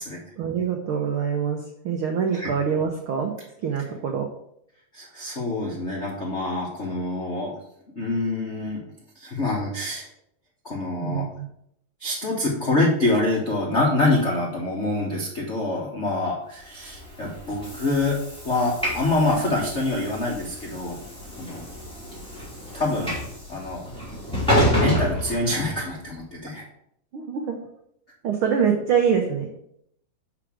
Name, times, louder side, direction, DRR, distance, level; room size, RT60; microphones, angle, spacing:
voice 1, 0.4-3.3 3.6-4.3 11.0-11.5 27.1-27.6 28.2-29.6, right 7 dB, 85° right, 3 dB, 1.1 m, -25 dB
voice 2, 4.9-7.6 7.9-8.8 9.1-10.1 10.6-11.3 12.0-18.2 18.4-21.0 21.4-21.6 22.7-23.1 23.5-23.8 24.5-26.6, left 2 dB, 90° left, -3 dB, 0.6 m, -26 dB
Train / Sliding door, 16.8-26.0, equal, ahead, 2.2 m, -29 dB
6.1 x 4.8 x 6.2 m, 0.72 s
omnidirectional pair, 3.5 m